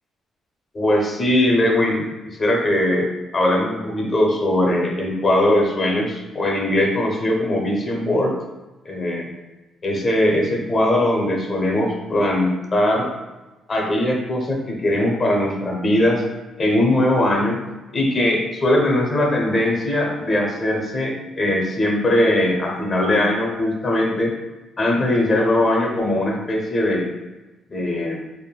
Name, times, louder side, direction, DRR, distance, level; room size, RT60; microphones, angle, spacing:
voice 1, 0.7-3.1 3.3-8.3 8.9-9.3 9.8-13.1 13.7-16.2 16.6-17.6 17.9-24.3 24.8-27.1 27.7-28.2, left 1 dB, 35° left, 0 dB, 0.6 m, -20 dB
3.3 x 2.1 x 2.2 m, 1.1 s
cardioid pair, 90°, 0 cm